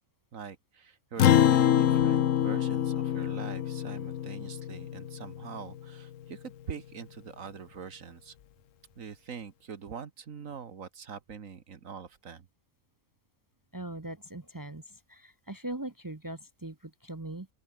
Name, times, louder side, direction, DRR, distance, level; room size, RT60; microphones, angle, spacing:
voice 1, 0.3-8.4 9.0-12.5, right 6 dB, 70° right, 1.8 m, -43 dB
Acoustic guitar, 1.2-5.9, left 10 dB, 65° left, 1.1 m, -25 dB
voice 2, 13.7-17.5, right 1 dB, 20° right, 0.6 m, -40 dB
open air
omnidirectional pair, 1.5 m